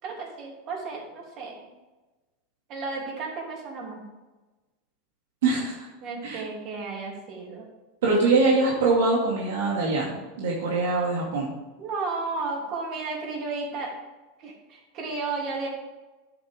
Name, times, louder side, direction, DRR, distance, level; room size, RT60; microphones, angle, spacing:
voice 1, 0.0-1.7 2.7-4.0 6.0-7.7 11.8-13.9 14.4-15.7, right 3 dB, 40° right, -1 dB, 3.1 m, -33 dB
voice 2, 5.4-5.9 6.2-6.4 8.0-11.5, right 3 dB, 85° right, -4 dB, 2.3 m, -23 dB
10.0 x 8.5 x 3.7 m, 1.2 s
supercardioid pair, 145°, 0 cm